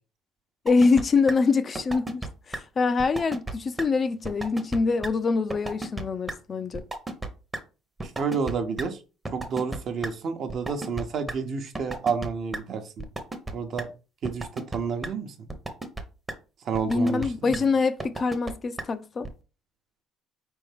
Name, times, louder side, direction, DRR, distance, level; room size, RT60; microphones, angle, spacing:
voice 1, 0.6-6.8 16.8-19.3, left 4 dB, 35° left, 0.4 m, -24 dB
sound 1, 0.7-1.0 1.3-1.4 1.8-2.3 2.5-2.6 3.0-3.5 3.8-3.9 4.2-4.8 5.0-5.1 5.5-6.0 6.3-6.4 6.7-7.3 7.5-7.6 8.0-8.5 8.8-8.9 9.3-10.1 10.5-11.3 11.8-12.3 12.5-12.6 13.0-13.5 13.8-13.9 14.2-14.8 15.0-15.1 15.5-16.0 16.3-16.4 16.7-17.3 17.5-17.6 18.0-18.5 18.8-18.9 19.2-19.3, right 2 dB, 15° right, 0.8 m, -33 dB
voice 2, 8.2-9.0 9.3-13.0 13.5-13.9 14.2-14.5 14.7-15.3 16.7-17.2, right 5 dB, 55° right, 0.8 m, -29 dB
4.4 x 3.4 x 3.4 m
cardioid pair, 105°, 0 cm